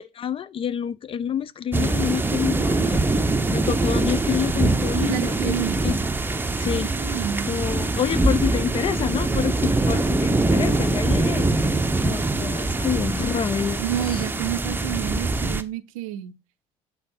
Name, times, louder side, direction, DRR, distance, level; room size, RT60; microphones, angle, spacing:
voice 1, 0.2-3.1 3.5-5.6 5.8-6.0 6.6-6.9 7.5-11.5 12.0-14.2, left 8 dB, 30° left, 0.3 m, -28 dB
sound 1, 1.7-15.6, right 2 dB, 10° right, 0.6 m, -23 dB
voice 2, 4.9-5.8 7.0-7.6 13.8-16.3, right 11 dB, 70° right, 0.5 m, -29 dB
7.6 x 3.9 x 4.5 m
figure-of-eight pair, 55°, 19 cm